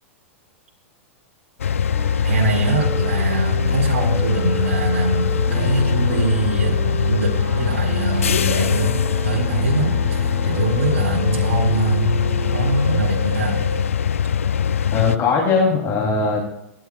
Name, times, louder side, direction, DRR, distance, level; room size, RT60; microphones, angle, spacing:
sound 1, 1.6-15.2, left 7 dB, 80° left, 0.5 m, -21 dB
sound 2, 1.9-13.8, right 6 dB, 35° right, 5.7 m, -33 dB
voice 1, 2.2-12.2 12.5-13.6, right 3 dB, 70° right, -1 dB, 3.4 m, -23 dB
voice 2, 14.9-16.4, left 4 dB, 35° left, -1 dB, 3.0 m, -19 dB
23.5 x 10.5 x 2.4 m, 0.82 s
hypercardioid pair, 100°, 7 cm